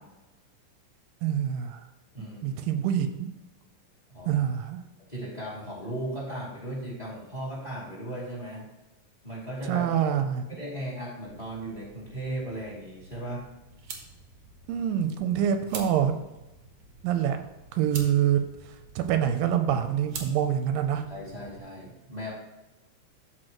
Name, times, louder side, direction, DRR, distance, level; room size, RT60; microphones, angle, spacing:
voice 1, 1.2-1.8 2.4-3.3 4.3-4.8 9.7-10.5 14.7-16.1 17.0-17.4 17.7-18.4 19.0-21.0, right 9 dB, 85° right, 7 dB, 2.3 m, -25 dB
voice 2, 2.1-2.6 4.1-4.4 5.1-8.7 9.2-9.8 10.5-13.5 21.1-22.3, right 1 dB, 15° left, -6 dB, 2.4 m, -36 dB
sound 1, 11.2-21.6, right 4 dB, 65° right, 1.4 m, -46 dB
12.5 x 4.6 x 3.0 m, 0.99 s
omnidirectional pair, 4.0 m